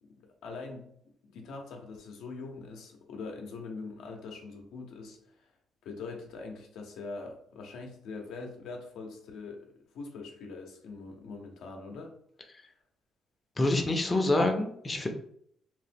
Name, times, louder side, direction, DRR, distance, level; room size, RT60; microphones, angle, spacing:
voice 1, 0.0-0.9 1.2-5.5 5.8-12.2, left 3 dB, 85° left, 2 dB, 0.6 m, -43 dB
voice 2, 13.6-15.1, left 2 dB, 25° left, 4 dB, 0.5 m, -26 dB
2.9 x 2.0 x 3.3 m, 0.68 s
cardioid pair, 90°, 0 cm